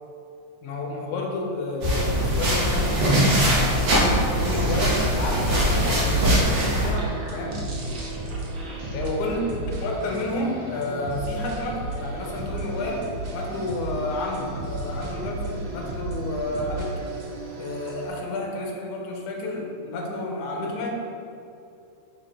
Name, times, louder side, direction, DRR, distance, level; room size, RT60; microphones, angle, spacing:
voice 1, 0.6-3.9 4.4-8.0 8.9-17.1 17.6-20.9, left 2 dB, 85° left, 1 dB, 2.3 m, -30 dB
sound 1, 1.8-6.9, equal, 50° right, 1.8 m, -21 dB
sound 2, 3.6-5.4 6.1-9.1, right 2 dB, 80° right, 1.0 m, -42 dB
sound 3, 4.0-18.1, right 2 dB, 65° right, 1.3 m, -34 dB
9.1 x 3.4 x 3.4 m, 2.6 s
omnidirectional pair, 3.4 m